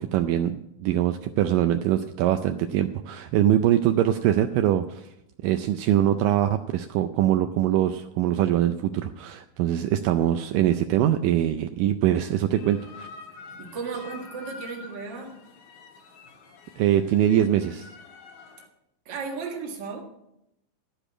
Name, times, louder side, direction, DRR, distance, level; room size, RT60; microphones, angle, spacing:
voice 1, 0.0-5.1 5.4-13.1 16.8-17.9, right 11 dB, 80° right, 7 dB, 2.1 m, -23 dB
sound 1, 12.5-18.7, left 4 dB, 80° left, 3.0 m, -46 dB
voice 2, 13.6-15.4 19.1-20.0, right 5 dB, 40° right, 0 dB, 1.9 m, -35 dB
13.5 x 5.0 x 8.5 m, 0.84 s
omnidirectional pair, 4.1 m